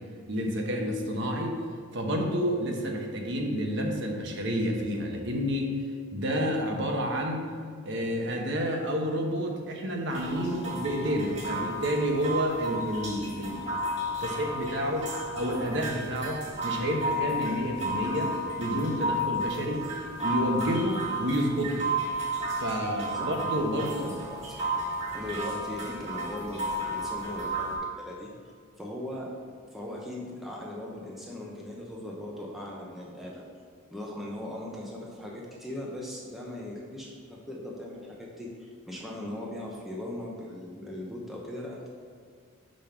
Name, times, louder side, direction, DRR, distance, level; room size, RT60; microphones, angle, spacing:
voice 1, 0.3-1.6 1.9-5.8 6.1-7.5 7.8-13.7 14.2-19.9 20.2-21.8 22.5-24.2, equal, 55° right, 1 dB, 1.0 m, -29 dB
sound 1, 10.1-27.8, right 1 dB, 30° right, 1.5 m, -33 dB
voice 2, 23.8-24.7 25.1-28.3 28.8-29.3 29.7-33.4 33.9-41.9, left 1 dB, ahead, -4 dB, 0.7 m, -39 dB
5.3 x 5.2 x 5.8 m, 2.1 s
head